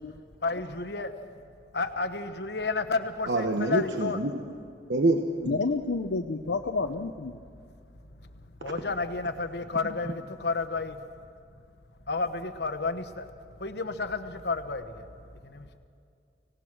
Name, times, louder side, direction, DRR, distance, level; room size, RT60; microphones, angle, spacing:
voice 1, 0.4-1.1 1.7-4.2 8.2-8.3 8.6-11.0 12.1-13.3 13.5-15.7, left 3 dB, 65° left, 9 dB, 1.2 m, -31 dB
voice 2, 3.3-4.3 4.9-5.6, right 2 dB, 75° right, 4 dB, 1.1 m, -26 dB
voice 3, 5.4-7.4, left 3 dB, 85° left, 4 dB, 0.7 m, -30 dB
26.0 x 17.5 x 6.2 m, 2.4 s
head